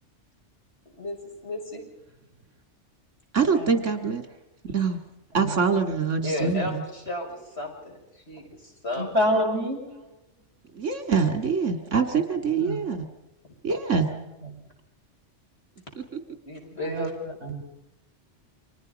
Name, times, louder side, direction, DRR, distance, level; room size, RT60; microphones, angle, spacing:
voice 1, 1.4-1.8 6.2-8.0 8.3-8.4 8.8-9.4 16.4-17.1, left 1 dB, 60° left, 0 dB, 6.7 m, -33 dB
voice 2, 3.3-4.2 4.6-5.0 5.3-6.8 10.7-13.0 13.6-14.1, right 5 dB, 85° right, 7 dB, 2.5 m, -24 dB
voice 3, 9.0-9.8 12.6-12.8 14.1-14.2 16.8-17.6, equal, 65° right, 4 dB, 6.1 m, -27 dB
30.0 x 25.0 x 5.3 m, 0.90 s
omnidirectional pair, 1.2 m